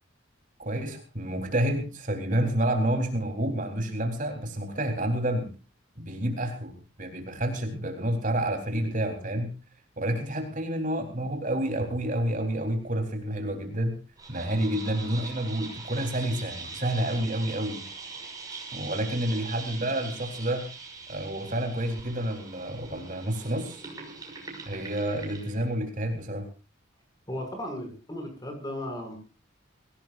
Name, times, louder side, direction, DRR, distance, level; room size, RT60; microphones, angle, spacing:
voice 1, 0.6-5.5 6.0-9.5 10.0-14.0 14.3-17.8 18.7-20.7 21.1-23.8 24.7-26.5, right 1 dB, 40° right, 4 dB, 4.0 m, -29 dB
sound 1, 14.2-25.7, right 4 dB, 20° right, 6.1 m, -42 dB
voice 2, 27.3-29.2, left 1 dB, 20° left, 4 dB, 6.8 m, -35 dB
24.0 x 17.5 x 2.6 m, 0.33 s
head